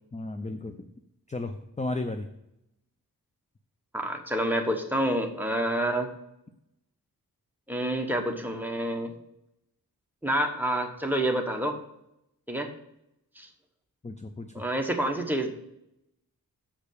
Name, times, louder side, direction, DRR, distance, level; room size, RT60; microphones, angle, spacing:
voice 1, 0.1-0.9 1.3-2.3 14.0-14.5, left 2 dB, 20° left, 7 dB, 0.5 m, -34 dB
voice 2, 3.9-6.1 7.7-9.1 10.2-11.8 12.5-12.7 13.4-13.5 14.5-15.5, right 1 dB, 5° right, 3 dB, 1.1 m, -28 dB
7.3 x 5.1 x 6.5 m, 0.82 s
wide cardioid pair, 100°, 36 cm